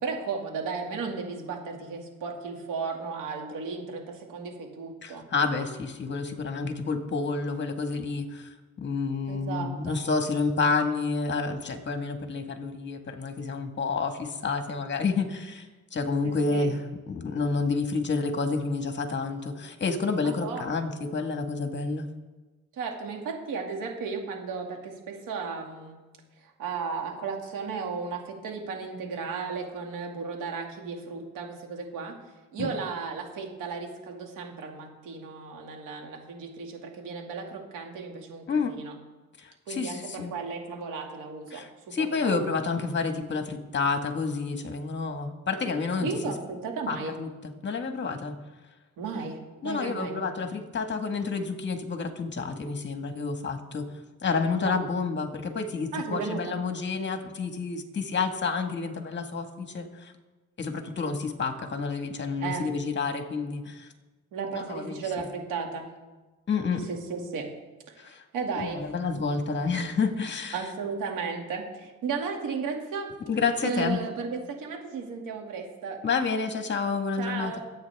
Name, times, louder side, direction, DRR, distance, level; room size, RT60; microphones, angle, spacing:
voice 1, 0.0-5.3 9.3-10.0 16.2-16.7 20.2-20.6 22.7-26.0 26.4-32.2 32.5-39.0 39.7-42.4 46.0-47.1 49.0-50.2 54.6-54.8 55.9-56.6 62.4-62.7 64.3-65.9 66.9-67.5 67.9-68.9 70.5-73.1 73.6-76.0 77.2-77.6, right 5 dB, 90° right, 2 dB, 2.4 m, -35 dB
voice 2, 5.0-15.7 15.9-22.1 32.6-32.7 38.5-38.8 39.4-40.3 41.5-46.1 46.9-48.3 49.6-53.8 54.2-60.1 60.6-63.9 64.5-65.0 66.5-66.9 68.0-68.2 68.6-70.6 73.3-74.0 76.0-77.6, left 4 dB, 35° left, 6 dB, 1.7 m, -29 dB
23.0 x 8.7 x 3.6 m, 1.2 s
cardioid pair, 90°, 30 cm